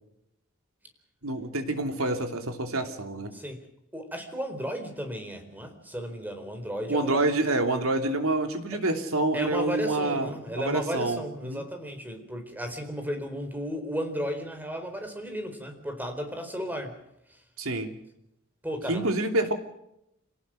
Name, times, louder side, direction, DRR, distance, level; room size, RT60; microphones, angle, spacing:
voice 1, 1.2-3.3 6.9-11.6 17.6-17.9 18.9-19.5, right 2 dB, 80° right, 5 dB, 3.0 m, -27 dB
voice 2, 3.9-7.2 9.3-16.9 18.6-19.1, equal, 10° right, 6 dB, 4.3 m, -34 dB
27.0 x 18.5 x 6.5 m, 0.81 s
head